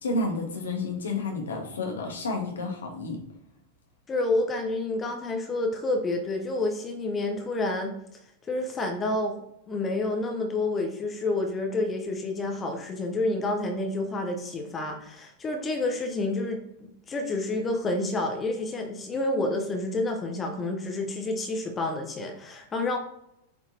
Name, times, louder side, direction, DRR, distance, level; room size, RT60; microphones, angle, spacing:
voice 1, 0.0-3.2, left 2 dB, 70° left, 2 dB, 1.5 m, -30 dB
voice 2, 4.1-7.9 8.5-23.0, left 2 dB, 20° left, 3 dB, 0.9 m, -29 dB
7.7 x 4.3 x 2.9 m, 0.80 s
figure-of-eight pair, 90°, 0 cm